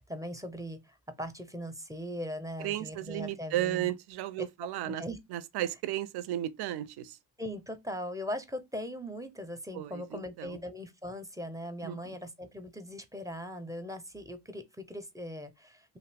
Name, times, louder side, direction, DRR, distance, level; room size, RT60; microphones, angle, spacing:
voice 1, 0.0-3.9 4.8-5.2 7.4-16.0, equal, 10° right, 0.6 m, -40 dB
voice 2, 2.6-5.0 5.3-7.2 9.7-10.6 11.8-12.0, right 13 dB, 60° right, 0.5 m, -34 dB
2.6 x 2.4 x 3.3 m
supercardioid pair, 60°, 44 cm